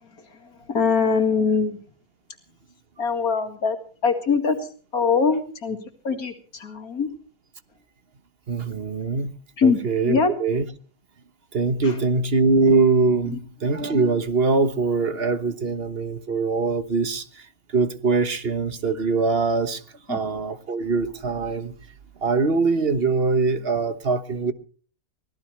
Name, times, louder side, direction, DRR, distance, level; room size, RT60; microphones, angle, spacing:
voice 1, 0.7-1.8 3.0-3.8 4.0-4.6 4.9-5.8 6.0-7.1 9.6-9.8 10.0-10.3 11.8-11.9 13.3-13.4 20.1-20.2, left 5 dB, 90° left, 2.7 m, -22 dB
voice 2, 8.5-9.3 9.6-10.6 11.5-17.5 17.7-19.8 20.1-21.7 22.2-24.5, right 4 dB, 45° right, 1.4 m, -22 dB
24.0 x 17.5 x 3.3 m
omnidirectional pair, 1.5 m